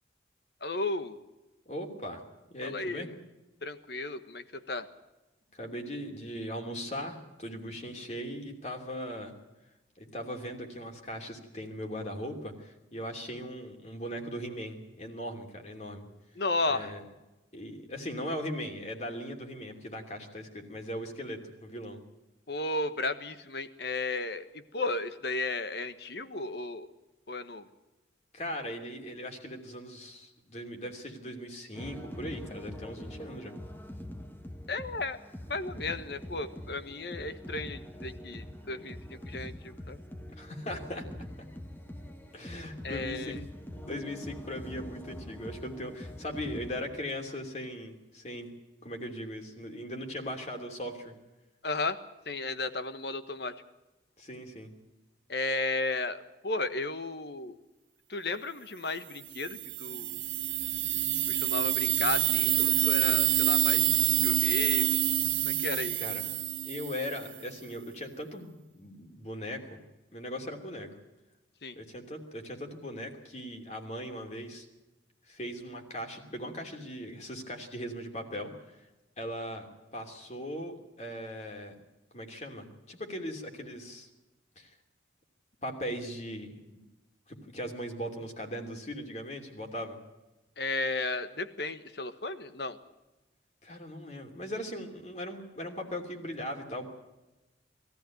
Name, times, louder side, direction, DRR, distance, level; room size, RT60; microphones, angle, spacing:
voice 1, 0.6-1.2 2.6-3.0 3.6-4.9 16.4-16.9 22.5-26.9 27.3-27.7 34.7-35.2 35.5-40.0 42.8-43.4 51.6-52.0 52.3-53.5 55.3-56.2 56.4-57.6 58.1-60.2 61.3-63.9 64.2-65.0 65.4-66.0 71.6-71.7 90.6-92.8, left 3 dB, 60° left, 11 dB, 1.3 m, -34 dB
voice 2, 1.7-2.2 2.5-3.1 5.5-9.3 10.0-16.0 16.7-17.0 17.5-22.0 28.3-33.5 40.4-41.1 42.3-43.4 43.7-48.5 48.8-51.1 54.2-54.7 66.0-66.2 66.6-69.6 70.1-70.9 71.7-74.7 75.3-78.5 78.8-78.9 79.2-81.7 82.1-84.1 84.6-84.7 85.6-86.8 87.3-90.0 93.6-96.9, equal, 35° left, 3 dB, 3.0 m, -39 dB
sound 1, 31.7-46.9, left 1 dB, 10° left, 1.4 m, -44 dB
sound 2, 59.3-67.3, right 14 dB, 85° right, 0.9 m, -27 dB
22.0 x 14.5 x 9.2 m, 1.1 s
head